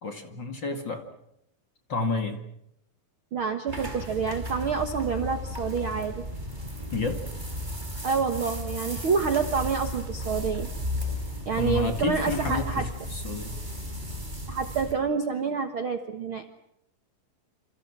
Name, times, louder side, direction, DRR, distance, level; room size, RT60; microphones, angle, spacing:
voice 1, 0.0-1.1 1.9-2.4 6.9-7.2 11.6-13.6, left 3 dB, 35° left, 6 dB, 2.3 m, -30 dB
voice 2, 3.3-6.3 8.0-10.7 11.4-12.8 14.5-16.4, right 6 dB, 55° right, 7 dB, 1.6 m, -28 dB
sound 1, 3.7-14.9, left 1 dB, 10° right, 4.1 m, -34 dB
28.5 x 28.0 x 6.2 m, 0.76 s
omnidirectional pair, 4.1 m